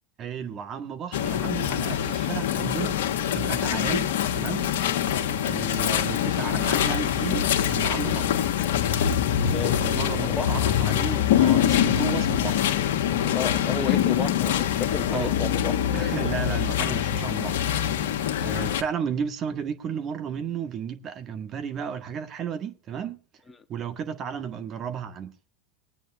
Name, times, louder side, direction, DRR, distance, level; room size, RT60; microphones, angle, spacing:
voice 1, 0.2-3.0 3.3-4.7 4.9-5.0 5.5-8.3 9.7-12.7 15.1-15.3 15.9-18.0 18.4-23.2 23.7-25.3, right 7 dB, 40° right, 1.6 m, -33 dB
sound 1, 1.1-18.8, left 10 dB, 70° left, 1.4 m, -24 dB
voice 2, 9.3-9.9 10.2-10.5 13.3-16.1, left 4 dB, 15° left, 1.4 m, -32 dB
21.0 x 9.1 x 3.6 m
hypercardioid pair, 95°, 0 cm